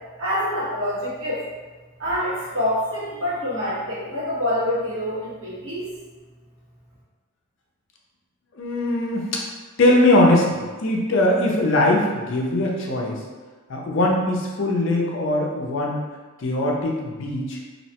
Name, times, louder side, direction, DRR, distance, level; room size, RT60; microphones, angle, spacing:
voice 1, 0.2-1.4 2.0-5.9, left 1 dB, 70° right, -9 dB, 1.2 m, -26 dB
voice 2, 8.6-9.4 9.8-13.2 13.7-16.0 16.4-17.6, left 1 dB, 60° left, -1 dB, 0.5 m, -21 dB
2.7 x 2.1 x 2.8 m, 1.3 s
head